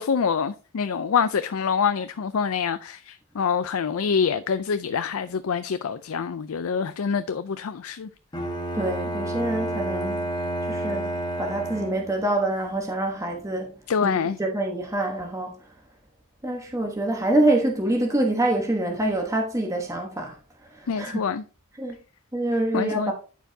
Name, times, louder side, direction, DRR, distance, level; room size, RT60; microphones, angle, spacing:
voice 1, 0.0-8.1 13.9-14.4 20.9-21.4 22.7-23.1, left 6 dB, 70° left, 0.4 m, -26 dB
Bowed string instrument, 8.3-12.3, right 1 dB, 20° left, 1.3 m, -30 dB
voice 2, 8.7-10.4 10.7-13.7 14.0-15.6 16.4-20.4 20.7-21.2 21.8-22.0 22.3-23.1, right 1 dB, 15° right, 1.1 m, -26 dB
13.5 x 4.7 x 2.7 m
head